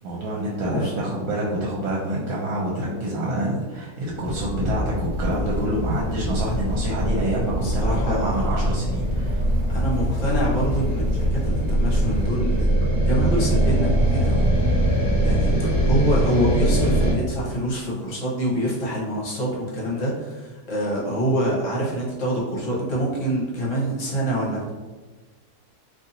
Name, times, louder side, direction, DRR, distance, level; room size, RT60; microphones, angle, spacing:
voice 1, 0.0-9.4 15.4-15.7, right 1 dB, 70° right, -3 dB, 1.1 m, -27 dB
sound 1, 4.2-12.3, left 1 dB, 35° right, 0.8 m, -28 dB
sound 2, 4.9-17.1, right 1 dB, 5° right, 1.3 m, -23 dB
voice 2, 7.6-8.4 9.7-12.7 13.0-14.5 15.2-24.7, right 1 dB, 55° left, -5 dB, 1.2 m, -26 dB
2.7 x 2.7 x 3.9 m, 1.3 s
omnidirectional pair, 1.7 m